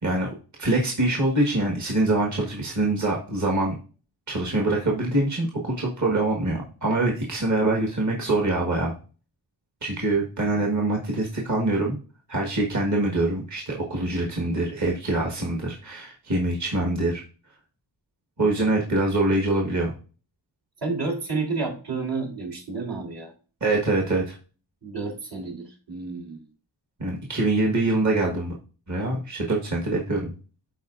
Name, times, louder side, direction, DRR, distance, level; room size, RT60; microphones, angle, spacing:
voice 1, 0.0-3.8 4.3-8.9 9.8-12.0 12.3-17.2 18.4-19.9 23.6-24.4 27.0-28.5 28.9-30.3, right 2 dB, 40° right, -1 dB, 1.5 m, -24 dB
voice 2, 20.8-23.3 24.8-26.4, right 4 dB, 65° right, 0 dB, 3.5 m, -30 dB
12.5 x 4.6 x 2.5 m, 0.36 s
wide cardioid pair, 125°, 45 cm